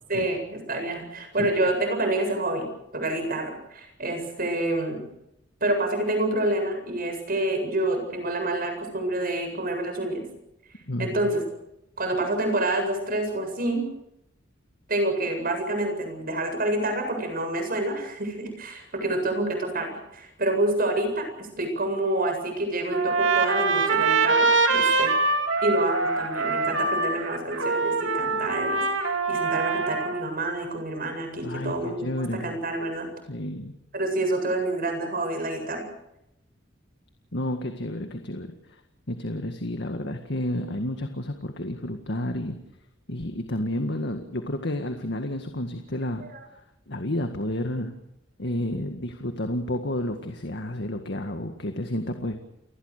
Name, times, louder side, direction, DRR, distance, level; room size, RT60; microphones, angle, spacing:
voice 1, 0.1-2.7 2.9-5.0 5.6-10.2 11.0-11.4 12.0-13.9 14.9-25.1 25.6-32.1 32.4-33.1 33.9-35.8 46.3-46.4, right 1 dB, 50° right, 5 dB, 7.9 m, -27 dB
voice 2, 10.9-11.3 31.4-32.5 33.3-33.7 37.3-38.8 39.1-42.6 43.1-46.2 46.9-47.9 48.4-52.4, left 1 dB, 60° left, 6 dB, 1.9 m, -31 dB
Trumpet, 22.9-30.2, right 3 dB, 75° right, 3.2 m, -24 dB
29.5 x 20.5 x 6.7 m, 0.84 s
head